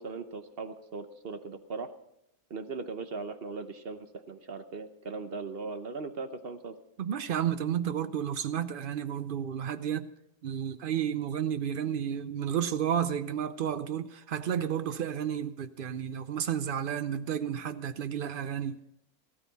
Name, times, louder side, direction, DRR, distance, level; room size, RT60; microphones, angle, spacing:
voice 1, 0.0-1.9 2.5-6.7, right 4 dB, 50° right, 0.9 m, -39 dB
voice 2, 7.0-10.1 10.4-18.9, right 9 dB, 70° right, 0.5 m, -32 dB
15.0 x 13.5 x 4.1 m
omnidirectional pair, 1.6 m